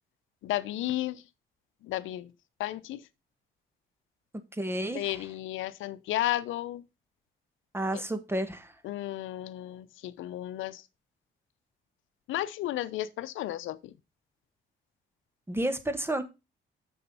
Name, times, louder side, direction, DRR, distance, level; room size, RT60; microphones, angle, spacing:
voice 1, 0.4-1.2 1.8-2.3 2.6-3.0 4.9-6.8 8.8-10.8 12.3-13.9, left 14 dB, 85° left, 0.7 m, -33 dB
voice 2, 4.5-5.2 7.7-8.7 15.5-16.2, right 1 dB, 10° right, 1.5 m, -31 dB
6.8 x 6.5 x 5.5 m
cardioid pair, 90°, 20 cm